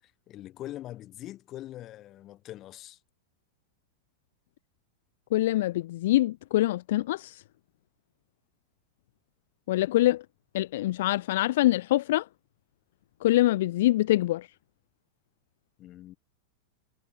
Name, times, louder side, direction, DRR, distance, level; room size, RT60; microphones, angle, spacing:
voice 1, 0.0-3.0 15.8-16.2, left 14 dB, 35° left, 7.5 m, -43 dB
voice 2, 5.3-7.4 9.7-10.2 10.5-12.2 13.2-14.5, left 15 dB, 70° left, 0.5 m, -24 dB
hypercardioid pair, 120°, 0 cm